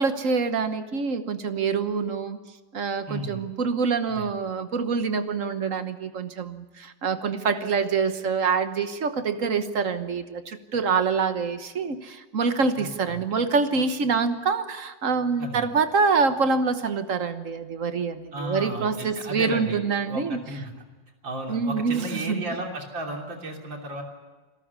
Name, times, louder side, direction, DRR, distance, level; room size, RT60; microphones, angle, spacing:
voice 1, 0.0-2.4 2.7-20.4 21.5-22.4, right 5 dB, 50° right, 10 dB, 1.4 m, -26 dB
voice 2, 3.1-3.4 4.1-4.3 12.8-13.2 15.4-15.7 18.3-19.8 20.1-20.7 21.2-24.0, right 1 dB, 85° right, 1 dB, 3.9 m, -34 dB
26.5 x 13.5 x 9.6 m, 1.2 s
omnidirectional pair, 2.0 m